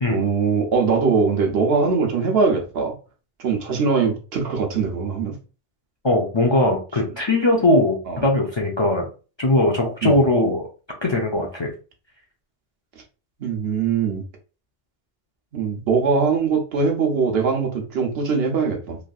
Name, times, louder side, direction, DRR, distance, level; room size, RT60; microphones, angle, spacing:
voice 1, 0.1-2.9 3.4-5.3 8.1-8.2 10.0-10.2 13.4-14.2 15.5-19.0, right 5 dB, 80° right, 1.0 m, -21 dB
voice 2, 6.0-9.1 9.4-10.7 11.0-11.7, left 1 dB, 40° left, 0.4 m, -20 dB
3.2 x 2.5 x 2.3 m
omnidirectional pair, 1.0 m